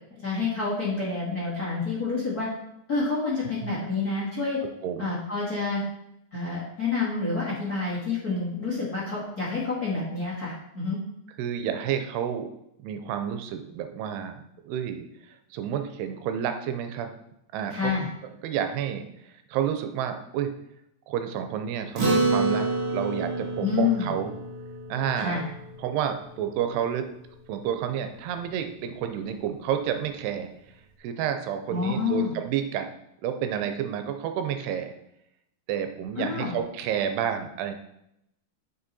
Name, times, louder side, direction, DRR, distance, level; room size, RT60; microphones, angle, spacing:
voice 1, 0.1-2.5 2.9-4.6 5.0-5.8 6.3-11.0 17.7-18.1 23.6-24.1 25.1-25.4 31.7-32.3 36.1-36.5, left 4 dB, 35° left, -6 dB, 1.6 m, -28 dB
voice 2, 11.4-12.5 12.8-15.1 15.5-17.2 17.5-17.9 18.4-19.1 19.5-20.5 21.1-24.4 24.9-25.4 25.8-27.1 27.5-30.5 31.0-32.9 33.2-34.9 35.7-37.7, right 9 dB, 90° right, 7 dB, 2.7 m, -30 dB
Acoustic guitar, 22.0-26.7, right 2 dB, 40° right, 1.2 m, -28 dB
9.7 x 5.9 x 4.2 m, 0.81 s
omnidirectional pair, 4.8 m